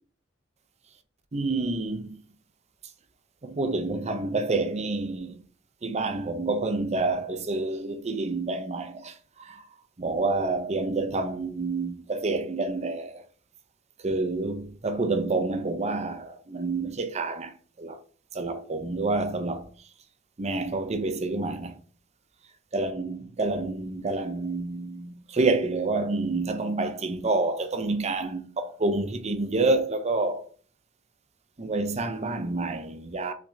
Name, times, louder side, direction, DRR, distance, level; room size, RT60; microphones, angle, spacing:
voice 1, 1.3-2.2 3.4-5.3 5.8-9.6 10.0-13.2 14.0-18.0 18.3-19.7 20.4-21.8 22.7-30.5 31.6-33.3, right 3 dB, 35° right, 0.6 m, -28 dB
5.8 x 3.4 x 2.7 m
head